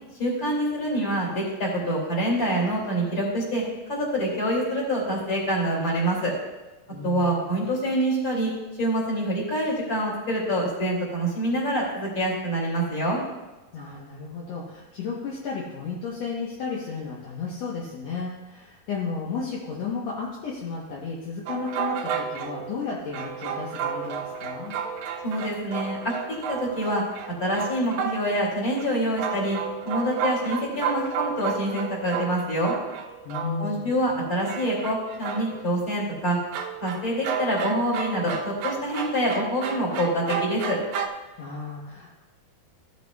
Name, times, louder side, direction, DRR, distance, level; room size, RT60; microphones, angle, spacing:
voice 1, 0.2-3.6 3.9-6.3 7.0-8.5 8.8-13.2 25.2-26.1 26.5-27.0 27.4-29.6 29.8-32.7 33.6-36.4 36.8-40.8, right 1 dB, 25° left, -4 dB, 2.5 m, -26 dB
voice 2, 6.9-7.6 13.7-24.7 33.2-33.9 41.4-42.2, left 5 dB, 70° left, -4 dB, 1.6 m, -33 dB
sound 1, 21.5-28.4 28.8-28.9 29.2-34.0 34.4-35.7 36.5-41.1, right 7 dB, 85° right, 2.9 m, -32 dB
15.0 x 8.0 x 2.3 m, 1.1 s
omnidirectional pair, 4.4 m